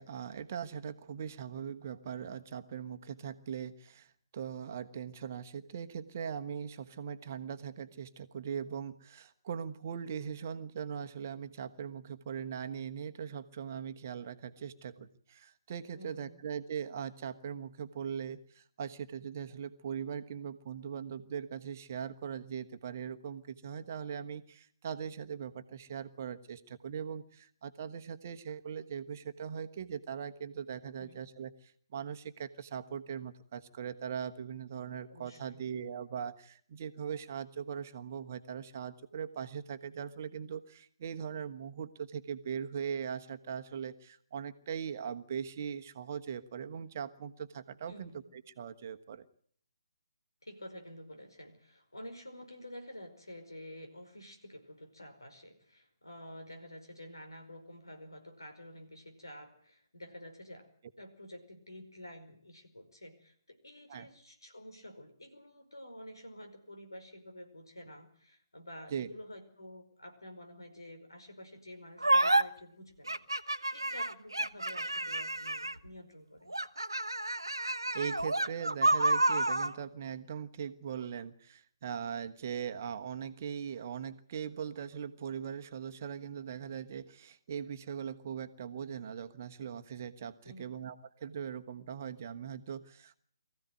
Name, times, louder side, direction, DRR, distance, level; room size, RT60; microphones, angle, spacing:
voice 1, 0.0-48.1 48.6-49.2 63.9-64.1 68.9-69.1 77.9-93.2, right 7 dB, 40° right, 9 dB, 1.3 m, -40 dB
voice 2, 15.9-16.4 31.0-31.2 35.1-35.6 47.9-48.3 50.4-60.7 61.0-76.6 90.4-90.7, left 1 dB, 75° left, 6 dB, 5.1 m, -50 dB
sound 1, 72.0-72.4 73.1-75.9 76.5-79.7, right 2 dB, 80° right, 1.1 m, -29 dB
23.5 x 15.0 x 9.4 m, 0.62 s
figure-of-eight pair, 140°, 2 cm